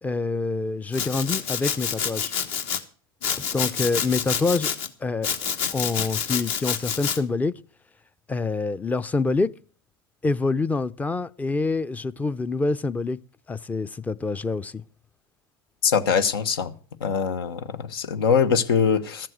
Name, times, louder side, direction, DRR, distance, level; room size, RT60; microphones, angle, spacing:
voice 1, 0.0-2.3 3.4-4.7 5.0-5.3 5.7-7.5 8.3-9.5 10.2-13.2 13.5-14.8, left 3 dB, 15° left, 0.5 m, -26 dB
Domestic sounds home sounds, 0.9-2.8 3.2-4.9 5.2-7.2, left 7 dB, 55° left, 1.5 m, -28 dB
voice 2, 15.8-16.7 17.0-19.3, left 6 dB, 80° left, 1.1 m, -22 dB
13.5 x 7.5 x 7.9 m
hypercardioid pair, 105°, 12 cm